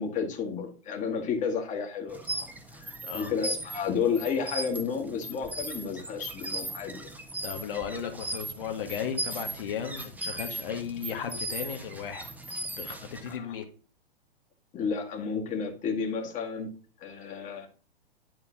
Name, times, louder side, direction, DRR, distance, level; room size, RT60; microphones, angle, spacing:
voice 1, 0.0-2.5 2.7-7.1 13.3-13.5 14.7-16.7 17.0-17.7, left 6 dB, 25° left, 2 dB, 1.9 m, -32 dB
sound 1, 2.1-13.4, right 2 dB, 5° right, 1.2 m, -38 dB
voice 2, 3.0-3.3 7.4-13.7, left 8 dB, 60° left, 4 dB, 1.7 m, -36 dB
11.0 x 3.8 x 6.1 m, 0.41 s
figure-of-eight pair, 115°, 31 cm